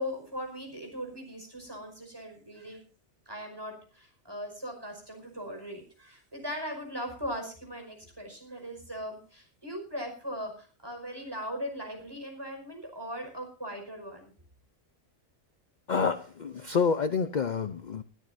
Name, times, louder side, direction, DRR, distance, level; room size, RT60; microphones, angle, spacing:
voice 1, 0.0-2.8 3.3-14.3 16.6-16.8, equal, 20° right, 3 dB, 5.4 m, -39 dB
voice 2, 15.9-18.0, left 5 dB, 45° left, 11 dB, 0.8 m, -28 dB
20.5 x 14.0 x 2.7 m, 0.38 s
omnidirectional pair, 1.2 m